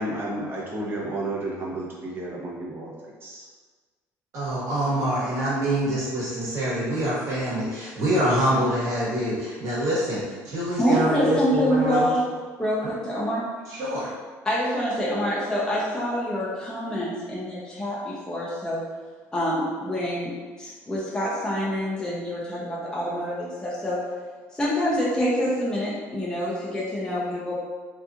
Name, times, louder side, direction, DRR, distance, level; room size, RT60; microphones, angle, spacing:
voice 1, 0.0-3.5, right 1 dB, 35° right, -4 dB, 0.7 m, -32 dB
voice 2, 4.3-12.1 12.8-12.9 13.7-14.1, right 1 dB, 50° right, -8 dB, 1.3 m, -25 dB
voice 3, 10.8-12.2 12.6-13.4 14.5-18.8 19.3-20.3 20.6-24.0 24.5-27.6, equal, 10° left, -7 dB, 0.5 m, -26 dB
2.8 x 2.4 x 2.3 m, 1.4 s
cardioid pair, 105°, 6 cm